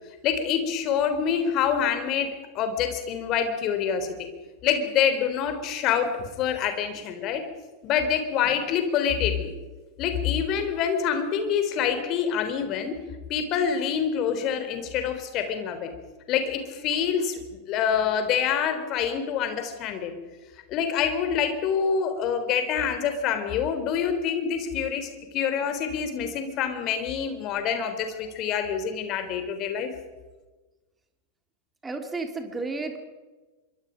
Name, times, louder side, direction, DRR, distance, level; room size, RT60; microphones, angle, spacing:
voice 1, 0.2-4.2 4.6-7.5 7.8-9.5 10.0-15.9 16.3-20.2 20.7-29.9, left 7 dB, 35° left, 8 dB, 3.6 m, -26 dB
voice 2, 31.8-33.0, right 3 dB, 10° right, 5 dB, 3.1 m, -32 dB
25.5 x 24.0 x 5.2 m, 1.2 s
figure-of-eight pair, 90°, 0 cm